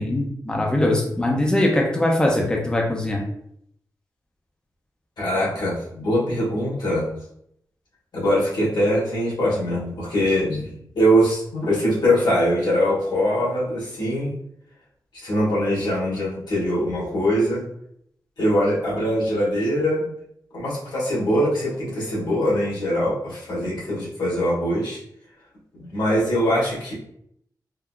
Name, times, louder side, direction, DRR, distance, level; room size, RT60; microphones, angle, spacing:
voice 1, 0.0-3.2, left 1 dB, 10° left, -1 dB, 0.6 m, -21 dB
voice 2, 5.2-7.1 8.1-14.3 15.2-17.7 18.4-20.1 20.5-25.0 25.7-26.9, equal, 90° left, -7 dB, 1.3 m, -22 dB
3.7 x 2.3 x 2.2 m, 0.71 s
wide cardioid pair, 75°, 7 cm